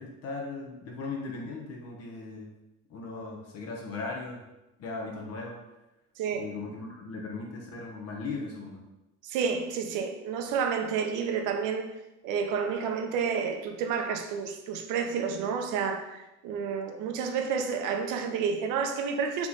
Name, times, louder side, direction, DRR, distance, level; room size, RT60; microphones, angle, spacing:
voice 1, 0.0-2.5 2.9-4.5 4.8-5.6 6.3-8.8, left 3 dB, 50° left, 0 dB, 0.9 m, -38 dB
voice 2, 6.2-6.5 9.2-11.9 12.2-19.5, right 6 dB, 75° right, 5 dB, 0.7 m, -30 dB
3.5 x 3.0 x 4.0 m, 0.95 s
cardioid pair, 120°, 31 cm